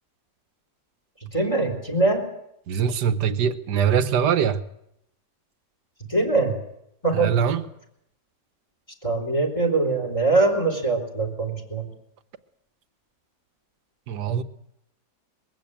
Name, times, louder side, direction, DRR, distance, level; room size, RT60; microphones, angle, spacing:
voice 1, 1.3-2.3 6.0-6.5 7.0-7.3 9.0-11.8, right 3 dB, 15° left, 3 dB, 4.0 m, -22 dB
voice 2, 2.7-4.6 7.1-7.6 14.1-14.4, right 8 dB, 65° right, 11 dB, 1.5 m, -22 dB
21.5 x 15.5 x 8.8 m, 0.77 s
omnidirectional pair, 2.0 m